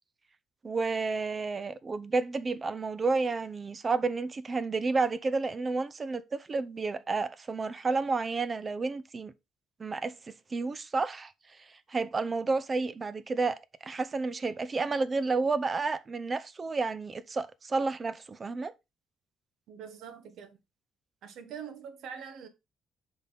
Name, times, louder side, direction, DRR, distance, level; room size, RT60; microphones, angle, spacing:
voice 1, 0.6-9.3 9.8-10.1 10.5-11.3 11.9-18.7, right 3 dB, 25° right, 0.6 m, -31 dB
voice 2, 19.7-20.6 21.2-22.5, right 7 dB, 65° right, 1.5 m, -44 dB
10.5 x 4.0 x 4.1 m
cardioid pair, 160°, 0 cm